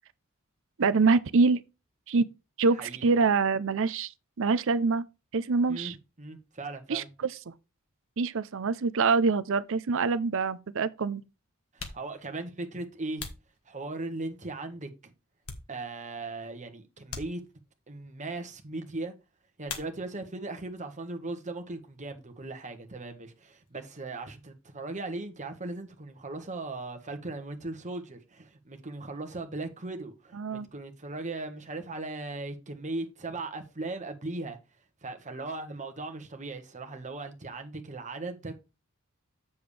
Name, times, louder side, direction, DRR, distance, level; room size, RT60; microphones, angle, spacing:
voice 1, 0.8-1.6 2.1-2.2 2.6-4.1 4.4-5.0 5.3-5.9 6.9-7.3 8.2-11.2 30.3-30.7, right 4 dB, 65° right, 0.6 m, -25 dB
voice 2, 5.7-7.1 11.7-13.2 13.7-15.1 15.7-17.4 17.9-19.1 19.6-34.6 35.0-38.6, right 2 dB, 35° right, 1.5 m, -38 dB
sound 1, 11.0-11.1 11.6-14.3 14.8-16.2 16.5-16.6 17.1-17.9 19.6-20.4 20.7-21.4 21.6-23.8, left 5 dB, 75° left, 1.5 m, -45 dB
7.8 x 7.0 x 3.3 m
head